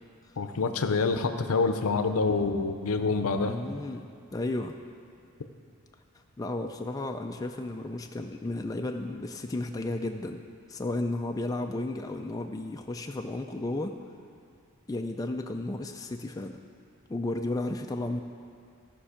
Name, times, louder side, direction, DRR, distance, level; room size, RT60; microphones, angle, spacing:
voice 1, 0.4-3.5, left 4 dB, 75° left, 8 dB, 0.6 m, -26 dB
voice 2, 3.4-4.7 6.4-10.4 10.7-13.9 14.9-16.6 17.1-18.2, left 2 dB, 15° left, 4 dB, 0.3 m, -33 dB
14.5 x 5.3 x 4.9 m, 2.4 s
head